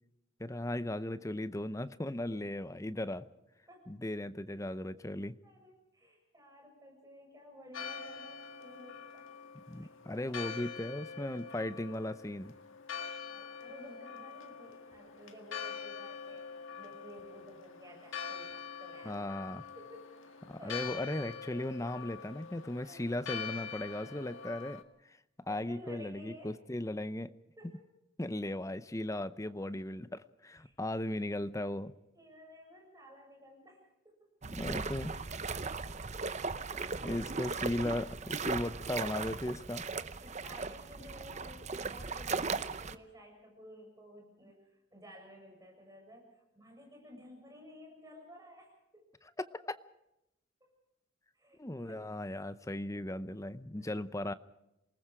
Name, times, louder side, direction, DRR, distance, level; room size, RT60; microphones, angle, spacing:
voice 1, 0.4-3.3 3.9-5.4 9.7-12.5 19.0-19.6 20.5-24.8 25.1-25.2 25.5-27.3 27.6-27.8 28.2-31.9 34.5-35.1 37.0-39.8 49.4-49.8 51.6-54.3, left 1 dB, 15° left, 13 dB, 0.6 m, -37 dB
voice 2, 5.4-9.3 9.7-10.6 13.3-16.4 16.7-19.2 19.8-20.8 22.8-23.0 25.5-26.5 27.6-27.8 30.6-30.7 32.1-34.1 36.9-37.2 40.2-48.7 50.6-50.7 51.3-52.0 53.7-53.9, equal, 15° right, 1 dB, 7.1 m, -54 dB
Church bell, 7.7-24.8, left 6 dB, 75° left, 1.8 m, -44 dB
sound 1, 34.4-43.0, right 4 dB, 35° right, 0.8 m, -38 dB
27.5 x 19.5 x 5.0 m, 0.90 s
head